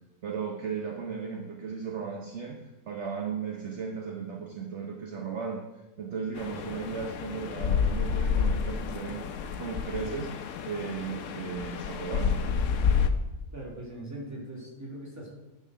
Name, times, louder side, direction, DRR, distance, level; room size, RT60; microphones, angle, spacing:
voice 1, 0.2-10.3 10.7-12.4, right 6 dB, 55° right, 1 dB, 1.1 m, -36 dB
sound 1, 6.4-13.1, left 6 dB, 65° left, 0.9 m, -29 dB
voice 2, 13.5-15.3, right 1 dB, 10° right, -3 dB, 2.3 m, -40 dB
10.5 x 4.7 x 6.0 m, 1.0 s
omnidirectional pair, 1.6 m